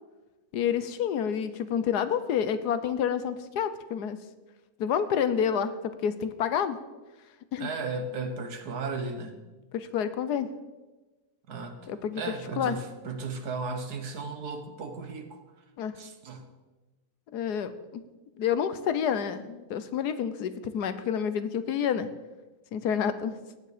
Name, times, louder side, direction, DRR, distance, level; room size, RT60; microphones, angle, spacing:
voice 1, 0.5-4.2 4.8-6.8 7.5-7.7 9.7-10.5 11.9-12.2 12.6-12.7 15.8-15.9 17.3-18.0 18.4-22.1 22.7-23.3, left 8 dB, 75° left, 12 dB, 1.4 m, -28 dB
voice 2, 7.6-9.4 11.5-15.4 16.0-16.5, right 3 dB, 70° right, 6 dB, 1.9 m, -35 dB
15.5 x 9.5 x 5.0 m, 1.2 s
omnidirectional pair, 1.7 m